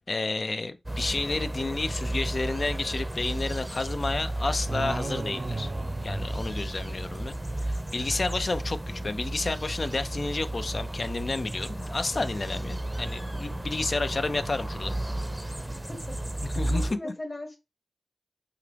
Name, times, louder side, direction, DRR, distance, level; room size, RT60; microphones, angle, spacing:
voice 1, 0.1-5.7 6.0-14.9 16.4-17.1, left 3 dB, 55° left, 0.5 m, -31 dB
sound 1, 0.9-16.9, right 1 dB, 15° right, 0.6 m, -33 dB
sound 2, 4.7-7.2, right 3 dB, 65° right, 0.5 m, -35 dB
voice 2, 15.7-17.6, left 1 dB, 35° left, 1.2 m, -40 dB
4.8 x 2.9 x 3.3 m
cardioid pair, 55°, 0 cm